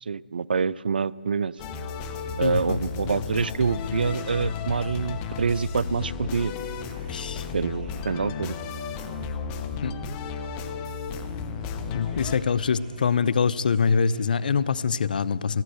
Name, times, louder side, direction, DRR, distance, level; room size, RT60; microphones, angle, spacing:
voice 1, 0.0-1.5 2.4-6.5 7.5-8.6, right 5 dB, 75° right, 21 dB, 0.3 m, -26 dB
sound 1, 1.6-12.4, left 5 dB, 25° left, 0.8 m, -33 dB
voice 2, 2.4-2.8 7.1-7.5 9.8-9.9 11.9-15.6, left 6 dB, 65° left, 19 dB, 0.4 m, -24 dB
sound 2, 3.7-14.5, equal, 15° right, 3.2 m, -52 dB
15.0 x 7.8 x 7.7 m, 2.3 s
figure-of-eight pair, 140°, 5 cm